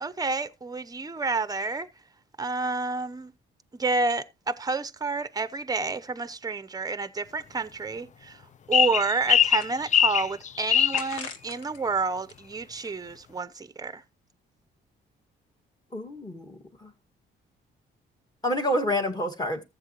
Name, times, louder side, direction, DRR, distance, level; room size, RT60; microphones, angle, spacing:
voice 1, 0.0-1.9 2.4-3.3 3.7-8.4 8.7-14.0, right 3 dB, 20° right, 0.8 m, -29 dB
sound 1, 7.8-7.9 8.2-8.3 8.9-10.2 10.9-11.8 12.2-13.4, left 6 dB, 90° left, 1.1 m, -43 dB
sound 2, 8.7-11.0, left 9 dB, 40° left, 0.5 m, -21 dB
voice 2, 15.9-16.9 18.4-19.6, left 1 dB, 20° left, 2.0 m, -28 dB
14.5 x 7.6 x 3.0 m
cardioid pair, 90°, 20 cm